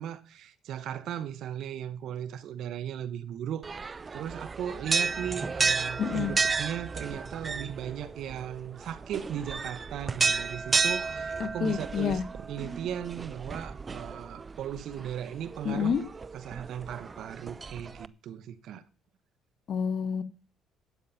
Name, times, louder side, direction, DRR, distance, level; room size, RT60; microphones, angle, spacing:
voice 1, 0.0-15.9 16.3-18.8, right 10 dB, 70° right, 1.1 m, -37 dB
sound 1, 3.6-18.1, right 4 dB, 30° right, 0.5 m, -33 dB
voice 2, 6.0-6.3 11.4-12.2 15.6-16.0 19.7-20.2, left 7 dB, 55° left, 1.3 m, -28 dB
12.0 x 8.9 x 5.8 m
cardioid pair, 90°, 0 cm